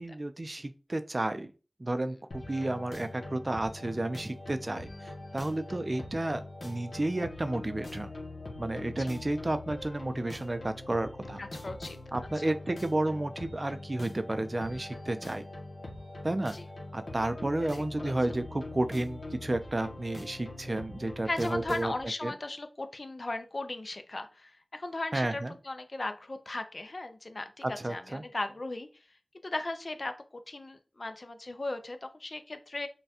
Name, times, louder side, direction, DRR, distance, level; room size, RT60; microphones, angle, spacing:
voice 1, 0.0-1.5 1.8-8.1 8.6-11.4 12.1-15.4 16.2-16.6 16.9-21.9 22.2-22.3 25.1-25.6 27.6-28.2, right 2 dB, 45° right, 10 dB, 0.4 m, -32 dB
sound 1, 2.3-22.0, left 2 dB, 85° left, 0.9 m, -43 dB
voice 2, 11.4-12.0 15.1-15.2 16.5-16.6 18.0-18.1 21.2-28.9 29.4-32.9, left 2 dB, 60° left, 8 dB, 0.5 m, -37 dB
5.5 x 2.2 x 2.8 m, 0.33 s
wide cardioid pair, 40°, 0 cm